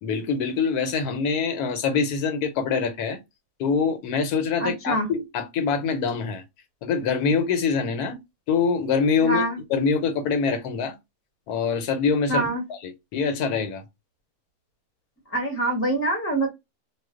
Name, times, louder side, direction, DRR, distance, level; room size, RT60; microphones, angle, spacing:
voice 1, 0.0-3.2 3.6-6.4 6.8-8.2 8.5-9.4 9.7-11.0 11.5-12.4 12.8-13.8, left 5 dB, 85° left, 1.1 m, -24 dB
voice 2, 4.6-5.1 9.2-9.6 12.3-12.6 15.3-16.5, right 1 dB, 10° left, 0.6 m, -25 dB
2.4 x 2.2 x 3.6 m
omnidirectional pair, 1.6 m